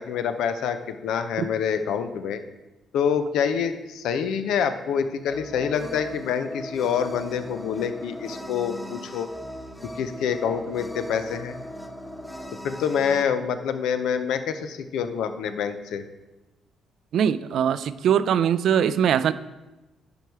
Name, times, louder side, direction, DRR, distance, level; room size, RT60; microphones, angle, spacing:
voice 1, 0.0-2.4 2.9-9.3 10.0-11.6 12.6-16.0, left 7 dB, 85° left, 9 dB, 0.6 m, -26 dB
sound 1, 5.2-13.2, equal, 5° left, 0.7 m, -38 dB
voice 2, 17.1-19.3, right 8 dB, 70° right, 15 dB, 0.4 m, -21 dB
10.0 x 4.7 x 4.6 m, 1.1 s
cardioid pair, 90°, 0 cm